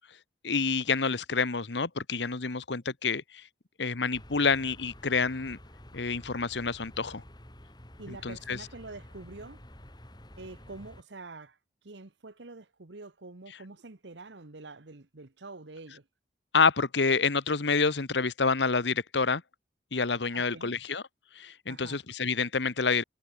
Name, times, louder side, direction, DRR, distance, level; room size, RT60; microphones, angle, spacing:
voice 1, 0.4-3.5 3.8-5.6 5.9-7.2 8.1-8.6 16.5-19.4 19.9-21.0 21.3-23.0, left 4 dB, 75° left, 1.2 m, -28 dB
sound 1, 4.1-11.0, equal, 25° left, 5.8 m, -50 dB
voice 2, 8.0-9.6 10.4-11.6 11.8-16.1 20.3-20.8 21.7-22.0, right 3 dB, 80° right, 1.3 m, -46 dB
head